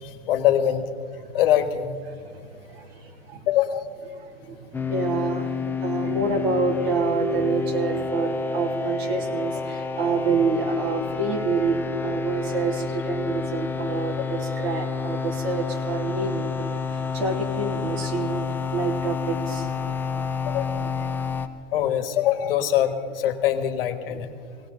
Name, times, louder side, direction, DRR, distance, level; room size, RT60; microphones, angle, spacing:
voice 1, 0.0-0.9 1.3-1.9 3.5-3.8 20.4-20.8 21.7-24.3, left 11 dB, 60° left, 8 dB, 1.5 m, -23 dB
voice 2, 2.1-3.5 4.1-19.8, right 4 dB, 70° right, 2 dB, 2.6 m, -28 dB
sound 1, 4.7-21.5, left 5 dB, 5° left, 0.5 m, -29 dB
18.0 x 17.5 x 3.9 m, 2.4 s
hypercardioid pair, 120°, 31 cm